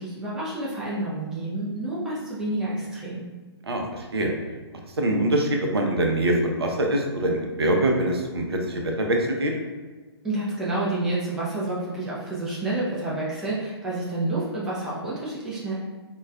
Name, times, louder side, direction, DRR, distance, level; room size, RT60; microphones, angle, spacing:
voice 1, 0.0-3.2 10.2-15.7, right 2 dB, 5° right, -8 dB, 0.4 m, -29 dB
voice 2, 3.7-4.3 5.0-9.5, right 1 dB, 65° right, 2 dB, 0.6 m, -24 dB
4.0 x 2.2 x 2.2 m, 1.3 s
figure-of-eight pair, 125°, 14 cm